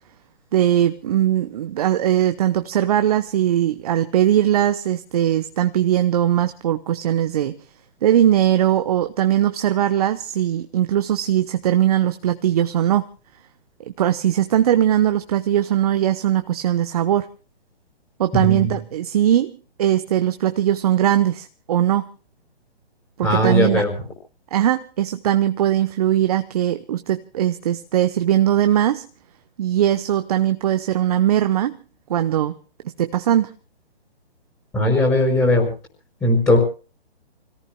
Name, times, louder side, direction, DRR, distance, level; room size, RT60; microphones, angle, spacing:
voice 1, 0.5-7.6 8.0-13.1 14.0-17.3 18.2-19.5 19.8-22.1 23.2-23.8 24.5-29.0 29.6-31.8 32.1-32.5 33.0-33.5, right 11 dB, 35° right, 9 dB, 0.9 m, -20 dB
voice 2, 18.3-18.7 23.2-23.9 34.7-35.7 36.2-36.6, left 1 dB, 10° left, 1 dB, 5.1 m, -18 dB
29.0 x 17.5 x 2.2 m, 0.37 s
hypercardioid pair, 145°, 32 cm